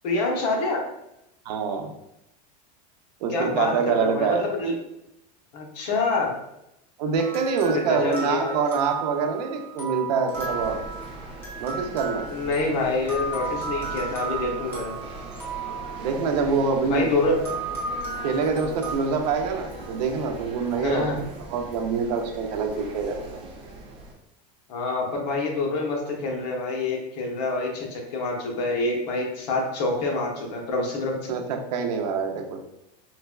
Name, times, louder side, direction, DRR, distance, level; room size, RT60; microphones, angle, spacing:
voice 1, 0.0-0.8 3.3-4.7 5.5-6.4 7.7-8.5 12.3-14.9 16.9-17.4 18.5-18.6 20.8-21.2 24.7-31.4, left 3 dB, 80° left, 0 dB, 0.9 m, -26 dB
voice 2, 1.4-1.9 3.2-4.5 7.0-10.8 11.6-12.3 16.0-17.1 18.2-21.1 21.5-23.4 31.3-32.6, right 5 dB, 80° right, 4 dB, 0.6 m, -25 dB
sound 1, 7.1-16.9 17.4-18.9, right 4 dB, 10° left, 0.7 m, -35 dB
sound 2, 10.3-24.1, right 2 dB, 25° right, 0.5 m, -40 dB
3.9 x 2.2 x 2.2 m, 0.85 s
supercardioid pair, 160°, 21 cm